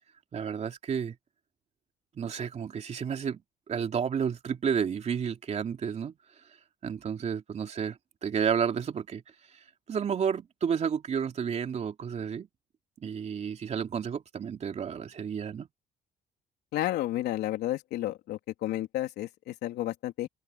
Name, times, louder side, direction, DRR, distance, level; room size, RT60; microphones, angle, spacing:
voice 1, 0.3-1.1 2.2-3.4 3.7-6.1 6.8-9.2 9.9-12.5 13.0-15.7, right 7 dB, 40° right, 2.9 m, -31 dB
voice 2, 16.7-20.3, left 14 dB, 80° left, 3.5 m, -31 dB
open air
cardioid pair, 110°, 17 cm